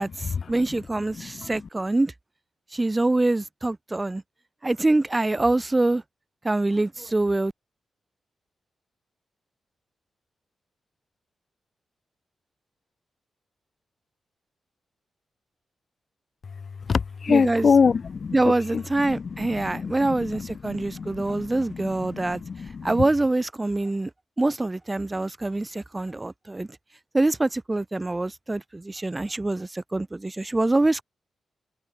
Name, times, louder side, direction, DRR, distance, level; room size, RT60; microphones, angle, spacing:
voice 1, 0.0-2.1 2.7-4.2 4.6-6.0 6.4-7.5 17.3-17.7 18.3-24.1 24.4-26.7 27.1-31.0, right 2 dB, 25° right, 0.8 m, -25 dB
voice 2, 1.1-1.5 16.9-18.4 18.7-23.0, left 5 dB, 60° left, 0.6 m, -26 dB
cardioid pair, 55°, 0 cm